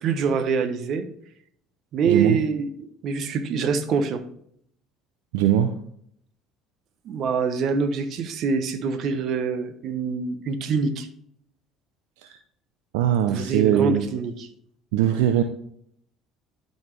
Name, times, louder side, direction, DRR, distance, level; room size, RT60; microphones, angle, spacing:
voice 1, 0.0-1.1 1.9-4.2 7.0-11.1 13.3-14.5, right 5 dB, 55° right, 9 dB, 1.0 m, -25 dB
voice 2, 2.1-2.4 5.3-5.7 12.2-12.4 12.9-14.1 14.9-15.4, right 10 dB, 75° right, 8 dB, 0.5 m, -21 dB
12.0 x 4.2 x 3.3 m, 0.68 s
hypercardioid pair, 70°, 0 cm